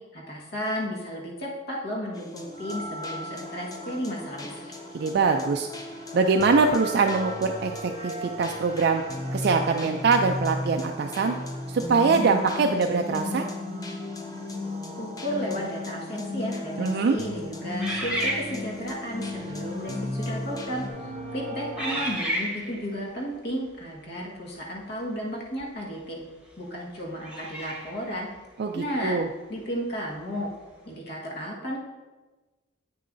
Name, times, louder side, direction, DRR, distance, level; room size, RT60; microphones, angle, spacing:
voice 1, 0.1-4.7 15.0-20.8 21.3-26.2 26.6-28.3 28.7-29.2 29.5-30.5 30.8-31.8, equal, 60° left, -3 dB, 1.5 m, -33 dB
sound 1, 2.1-20.9, left 2 dB, 20° left, 0.6 m, -36 dB
sound 2, 2.4-22.1, right 1 dB, 35° right, 0.7 m, -41 dB
voice 2, 4.9-5.7 6.1-9.0 9.3-11.4 11.7-13.5 16.8-17.2 28.6-29.3, right 4 dB, 55° right, 3 dB, 0.4 m, -23 dB
sound 3, 17.8-19.0 19.8-20.0 20.7-21.0 21.8-22.9 25.6-25.7 27.2-28.1, right 1 dB, 5° right, 1.1 m, -31 dB
8.4 x 6.7 x 2.6 m, 1.2 s
head